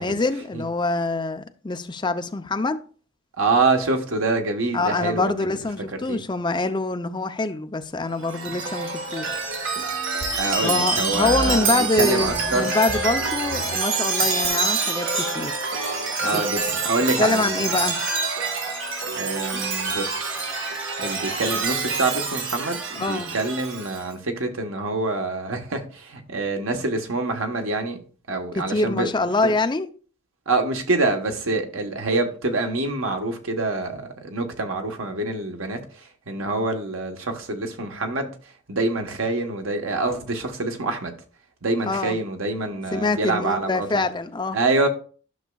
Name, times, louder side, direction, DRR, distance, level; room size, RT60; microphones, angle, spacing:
voice 1, 0.0-2.8 4.7-9.4 10.6-15.5 16.3-16.4 17.2-18.0 19.5-19.6 23.0-23.3 28.6-29.9 41.9-42.2 42.9-44.6, left 3 dB, 20° left, 0.5 m, -25 dB
voice 2, 3.4-5.4 5.9-6.2 10.3-12.7 16.2-17.5 19.1-20.3 21.0-28.0 28.3-29.1 29.4-29.5 30.5-41.1 41.6-43.9 44.5-44.9, right 3 dB, 85° right, 1.2 m, -26 dB
Chime, 8.2-24.0, right 4 dB, 65° right, 1.5 m, -26 dB
11.5 x 6.2 x 2.3 m
head